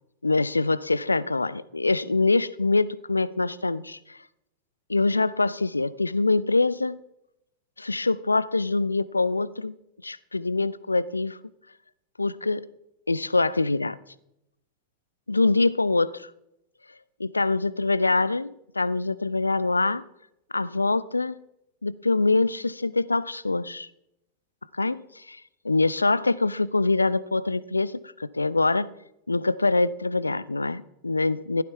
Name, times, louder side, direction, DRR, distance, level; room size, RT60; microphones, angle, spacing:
voice 1, 0.2-4.2 4.9-7.0 7.8-9.7 10.0-11.4 12.2-12.7 13.1-14.0 15.3-16.3 17.2-20.1 20.5-21.4 21.8-23.9 24.7-28.9 29.3-31.6, left 3 dB, 80° left, 20 dB, 0.5 m, -24 dB
15.5 x 12.5 x 3.5 m, 0.82 s
figure-of-eight pair, 90°, 0 cm